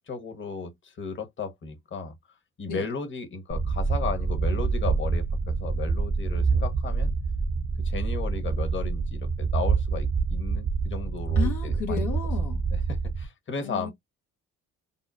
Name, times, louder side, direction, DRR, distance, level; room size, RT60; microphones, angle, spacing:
voice 1, 0.1-2.1 2.6-7.1 7.8-12.1 12.7-13.9, left 4 dB, 35° left, 1.2 m, -35 dB
sound 1, 3.5-13.3, right 4 dB, 25° right, 0.5 m, -26 dB
voice 2, 11.4-12.7 13.6-13.9, left 7 dB, 70° left, 0.9 m, -33 dB
5.4 x 2.1 x 2.5 m
cardioid pair, 85°, 32 cm